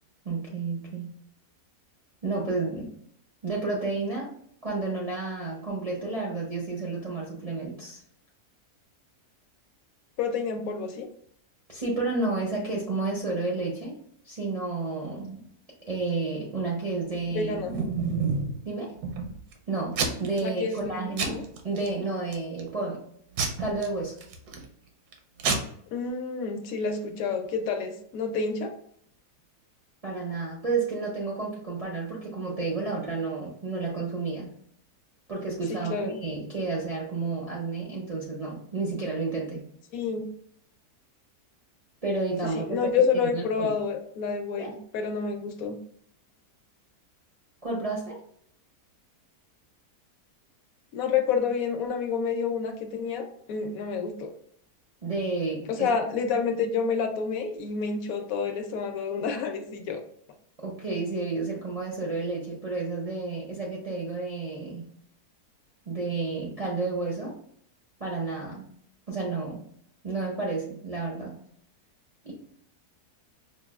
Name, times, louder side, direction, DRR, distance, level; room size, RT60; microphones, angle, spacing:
voice 1, 0.2-1.1 2.2-2.9 3.4-4.3 4.6-8.0 11.7-13.9 14.2-15.4 15.9-17.6 18.6-18.9 19.7-21.4 21.6-23.0 23.6-24.2 30.0-34.6 35.3-39.6 42.0-42.9 43.3-43.7 44.5-44.7 47.6-48.2 55.0-55.9 60.6-64.9 65.9-67.4 68.0-68.7 69.1-69.6 70.0-71.4 72.2-72.3, right 3 dB, 50° right, -5 dB, 0.4 m, -31 dB
voice 2, 10.2-11.1 17.3-17.8 20.4-21.4 25.9-28.7 35.7-36.2 39.9-40.3 42.5-45.8 50.9-54.3 55.7-60.0, left 5 dB, 70° left, 5 dB, 1.0 m, -29 dB
Packing tape duct tape / Tearing, 17.2-18.6 19.0-19.5 19.9-20.4 20.7-20.9 21.2-21.9 22.3-22.7 23.4-24.7 25.1-25.2 25.4-25.5, right 5 dB, 80° right, 1.2 m, -29 dB
5.3 x 2.2 x 2.3 m, 0.65 s
omnidirectional pair, 1.7 m